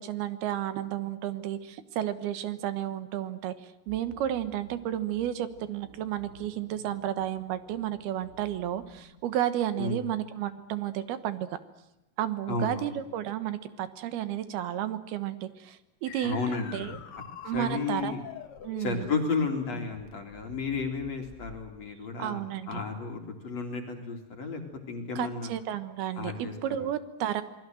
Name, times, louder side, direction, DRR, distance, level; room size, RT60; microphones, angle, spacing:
voice 1, 0.0-3.5 3.9-11.5 12.2-17.0 17.4-18.1 18.6-19.1 22.2-22.8 25.2-27.4, right 11 dB, 70° right, 13 dB, 3.1 m, -32 dB
sound 1, 3.9-9.1, right 4 dB, 50° right, 5.3 m, -54 dB
voice 2, 12.5-13.0 16.2-17.0 17.5-18.2 18.8-22.4 22.7-24.6 24.9-25.5 26.2-26.9, left 4 dB, 45° left, 3 dB, 3.4 m, -33 dB
sound 2, 16.1-21.8, left 7 dB, 90° left, 1.2 m, -45 dB
28.0 x 20.5 x 7.8 m, 0.89 s
omnidirectional pair, 4.8 m